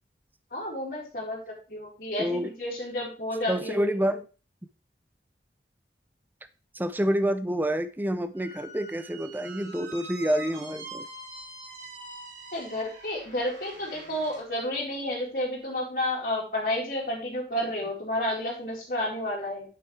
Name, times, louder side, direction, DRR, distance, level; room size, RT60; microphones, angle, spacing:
voice 1, 0.5-3.9 12.5-19.6, left 1 dB, 50° left, -3 dB, 4.1 m, -31 dB
voice 2, 2.2-2.5 3.5-4.3 6.7-11.1, equal, 10° right, 11 dB, 0.5 m, -28 dB
Squeak, 8.3-14.4, right 2 dB, 80° right, 5.7 m, -44 dB
9.4 x 7.8 x 3.3 m, 0.35 s
head